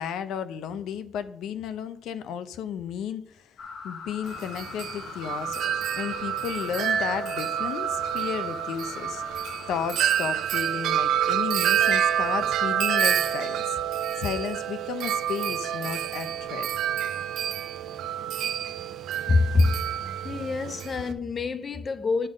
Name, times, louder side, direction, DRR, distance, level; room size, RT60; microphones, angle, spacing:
voice 1, 0.0-3.4 3.8-9.2 9.7-13.8 14.2-16.7, left 8 dB, 85° left, 0.6 m, -33 dB
sound 1, 3.6-10.5, left 5 dB, 50° left, 0.9 m, -41 dB
Wind chime, 4.3-21.1, right 10 dB, 75° right, 0.6 m, -28 dB
voice 2, 19.3-19.9 20.2-22.3, left 3 dB, 30° left, 0.4 m, -25 dB
11.0 x 3.7 x 5.2 m
cardioid pair, 170°, 0 cm